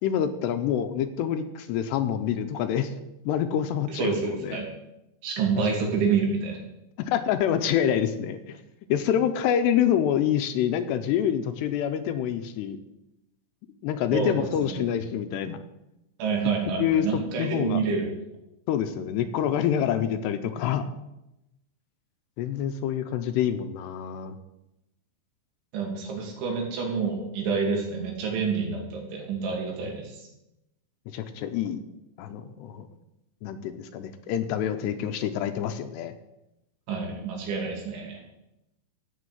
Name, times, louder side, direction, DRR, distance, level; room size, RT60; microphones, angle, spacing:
voice 1, 0.0-2.9 3.3-4.6 5.6-5.7 7.0-8.6 8.9-12.8 13.8-15.6 16.8-17.8 18.7-20.9 22.4-24.4 31.1-31.8 32.2-32.9 33.4-36.1, left 9 dB, 80° left, 9 dB, 2.7 m, -26 dB
voice 2, 3.9-4.7 5.2-6.6 14.1-14.7 16.2-18.1 25.7-30.2 36.9-38.2, right 5 dB, 85° right, 0 dB, 5.0 m, -28 dB
16.0 x 6.1 x 8.0 m, 0.91 s
omnidirectional pair, 5.2 m